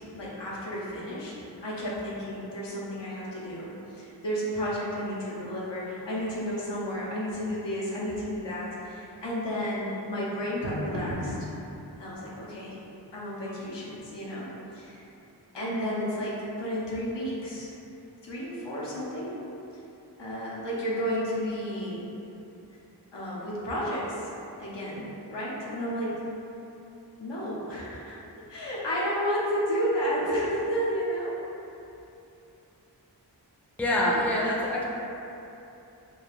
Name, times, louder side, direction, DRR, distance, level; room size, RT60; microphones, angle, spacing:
voice 1, 0.0-11.5 12.0-12.8 13.1-15.0 15.5-17.7 18.2-19.4 20.2-22.0 23.1-24.3 24.6-26.2 27.2-28.2 28.5-31.3, equal, 90° left, -6 dB, 0.7 m, -32 dB
sound 1, 6.3-16.9, equal, 70° right, 0.5 m, -44 dB
voice 2, 33.8-34.8, left 1 dB, 5° left, -4 dB, 0.4 m, -25 dB
2.4 x 2.3 x 3.0 m, 2.9 s
wide cardioid pair, 45°, 42 cm